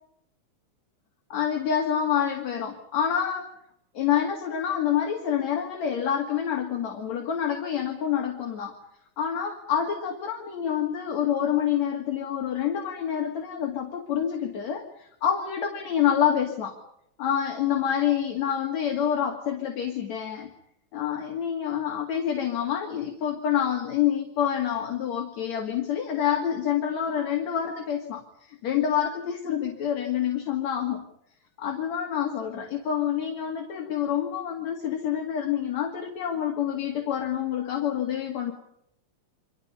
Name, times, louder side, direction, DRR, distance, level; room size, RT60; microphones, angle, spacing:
voice 1, 1.3-3.5 3.9-8.7 9.2-16.7 17.2-20.5 20.9-31.0 31.6-38.5, left 9 dB, 60° left, 2 dB, 3.3 m, -27 dB
29.5 x 25.0 x 5.6 m, 0.76 s
omnidirectional pair, 3.6 m